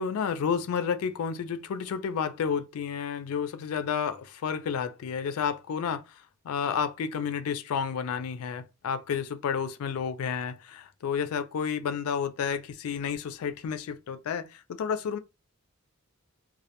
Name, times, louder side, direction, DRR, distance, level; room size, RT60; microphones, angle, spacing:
voice 1, 0.0-15.2, left 7 dB, 75° left, 0.3 m, -31 dB
2.2 x 2.1 x 2.8 m
head